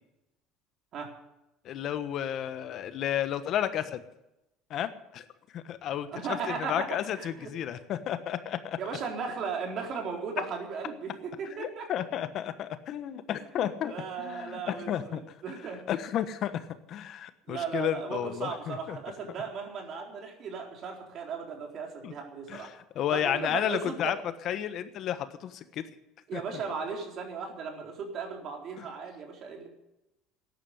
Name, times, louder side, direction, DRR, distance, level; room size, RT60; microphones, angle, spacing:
voice 1, 1.6-4.0 4.7-8.8 11.5-15.2 15.9-19.0 22.0-22.1 22.5-24.2 24.4-25.8 26.3-26.4 28.8-28.9, left 10 dB, 50° left, 11 dB, 1.2 m, -32 dB
voice 2, 6.1-6.9 7.2-7.5 8.8-11.9 13.6-15.8 17.5-22.7 23.1-24.1 26.3-29.7, right 5 dB, 50° right, 2 dB, 4.1 m, -36 dB
13.5 x 10.5 x 8.1 m, 0.90 s
supercardioid pair, 115°, 0 cm